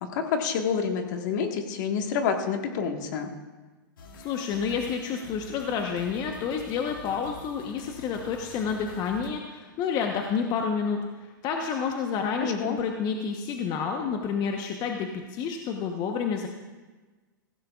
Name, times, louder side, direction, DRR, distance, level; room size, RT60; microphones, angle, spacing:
voice 1, 0.0-3.3 12.4-12.8, left 6 dB, 60° left, 4 dB, 1.6 m, -28 dB
sound 1, 4.0-9.3, left 3 dB, 80° left, 1.8 m, -48 dB
voice 2, 4.2-11.0 11.4-16.5, left 6 dB, 40° left, 3 dB, 1.1 m, -29 dB
16.0 x 15.5 x 2.5 m, 1.3 s
hypercardioid pair, 120°, 11 cm